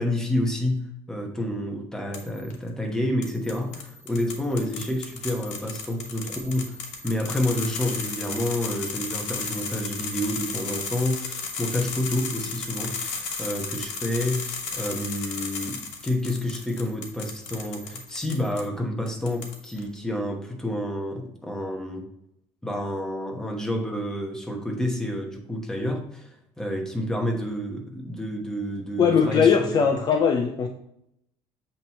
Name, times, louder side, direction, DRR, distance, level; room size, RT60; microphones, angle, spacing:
voice 1, 0.0-6.8 7.0-22.1 22.6-26.3 26.6-29.8, left 1 dB, 5° left, 0 dB, 1.1 m, -29 dB
sound 1, 2.1-2.5 3.2-18.6 19.1-19.8, left 5 dB, 65° left, 1.1 m, -34 dB
voice 2, 29.0-30.7, left 6 dB, 35° left, 4 dB, 0.5 m, -20 dB
7.6 x 3.0 x 4.1 m, 0.77 s
cardioid pair, 135°, 12 cm